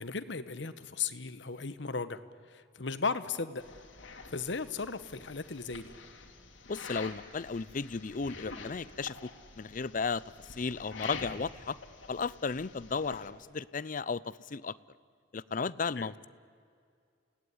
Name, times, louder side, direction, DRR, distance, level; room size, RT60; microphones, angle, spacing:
voice 1, 0.0-3.6 4.3-5.9 16.0-16.1, left 4 dB, 70° left, 12 dB, 1.1 m, -36 dB
sound 1, 3.6-13.3, left 4 dB, 85° left, 2.8 m, -47 dB
voice 2, 6.7-11.8 12.1-14.8 15.3-16.3, left 4 dB, 45° left, 19 dB, 0.5 m, -35 dB
29.5 x 18.0 x 9.6 m, 2.3 s
head